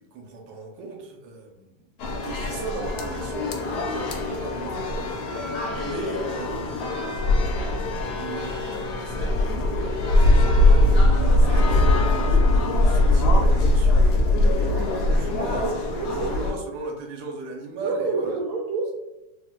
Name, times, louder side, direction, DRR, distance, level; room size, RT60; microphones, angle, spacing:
voice 1, 0.0-1.8 2.2-7.0 8.1-14.1 15.0-18.4, right 3 dB, 85° right, 1 dB, 1.3 m, -36 dB
sound 1, 2.0-16.5, left 2 dB, 75° left, 1.1 m, -21 dB
voice 2, 16.0-16.3 17.8-18.9, right 3 dB, 70° right, -3 dB, 1.0 m, -28 dB
3.5 x 2.7 x 2.2 m, 0.97 s
omnidirectional pair, 1.9 m